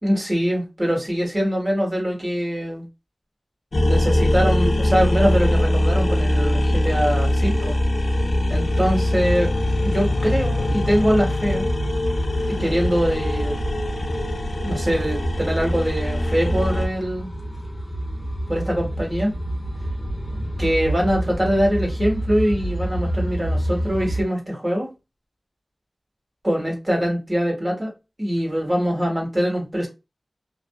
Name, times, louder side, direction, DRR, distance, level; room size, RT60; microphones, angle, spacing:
voice 1, 0.0-2.9 3.8-7.8 8.5-9.5 9.8-11.6 12.5-13.6 14.6-17.3 18.5-19.3 20.6-24.9 26.4-27.9 28.2-29.9, equal, 35° right, 1.6 m, -23 dB
sound 1, 3.7-16.9, left 1 dB, 70° left, 0.4 m, -22 dB
sound 2, 9.2-24.2, right 1 dB, 25° left, 0.9 m, -29 dB
2.5 x 2.4 x 2.2 m
wide cardioid pair, 55°, 0 cm